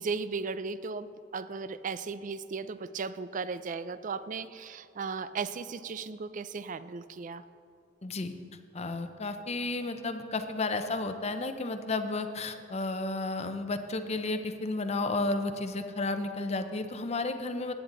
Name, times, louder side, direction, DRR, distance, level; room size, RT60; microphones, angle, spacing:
voice 1, 0.0-7.4, right 4 dB, 45° right, 14 dB, 0.4 m, -36 dB
voice 2, 8.0-8.3 8.7-17.7, left 2 dB, 35° left, 8 dB, 0.7 m, -32 dB
15.5 x 10.0 x 3.9 m, 2.6 s
head